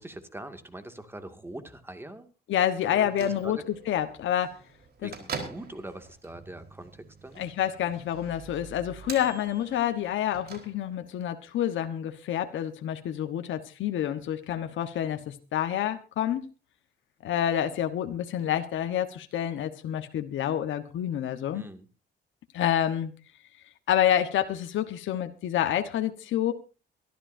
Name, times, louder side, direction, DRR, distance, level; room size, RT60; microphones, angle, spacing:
voice 1, 0.0-2.3 2.8-3.6 5.0-7.4 21.5-21.9, right 1 dB, 10° right, 2.2 m, -42 dB
voice 2, 2.5-3.6 3.9-4.6 5.0-5.1 7.4-16.4 17.2-21.6 22.5-23.1 23.9-26.5, left 10 dB, 75° left, 1.3 m, -28 dB
Bell / Microwave oven, 3.0-11.2, right 5 dB, 55° right, 4.3 m, -44 dB
24.0 x 12.5 x 2.7 m
cardioid pair, 90°, 20 cm